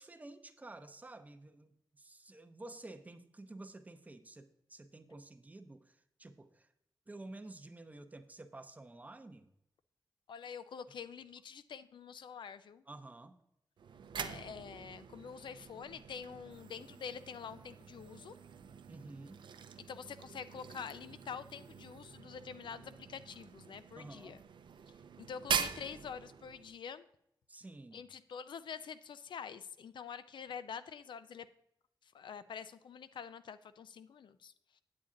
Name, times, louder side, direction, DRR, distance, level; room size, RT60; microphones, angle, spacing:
voice 1, 0.0-6.7 7.1-9.5 12.9-13.4 18.9-19.4 23.9-24.4 27.5-28.0, right 2 dB, 20° right, 9 dB, 0.6 m, -51 dB
voice 2, 10.3-12.8 14.1-18.3 19.9-24.4 25.2-27.0 27.9-31.5 32.1-34.8, left 7 dB, 85° left, 13 dB, 0.4 m, -46 dB
sound 1, 13.8-26.8, right 7 dB, 80° right, 0.5 m, -44 dB
8.7 x 8.4 x 3.7 m, 0.77 s
wide cardioid pair, 170°, 8 cm